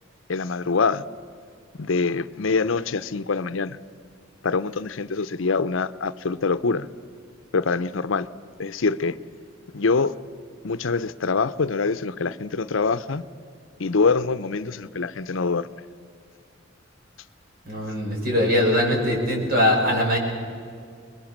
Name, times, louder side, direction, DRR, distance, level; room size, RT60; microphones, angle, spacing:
voice 1, 0.3-1.0 1.8-3.8 4.4-6.9 7.5-8.3 8.6-9.2 9.7-10.1 10.6-13.2 13.8-15.7, left 4 dB, 80° left, 14 dB, 0.7 m, -24 dB
voice 2, 17.6-20.2, left 1 dB, 50° right, -1 dB, 6.1 m, -21 dB
25.5 x 21.5 x 7.3 m, 2.3 s
head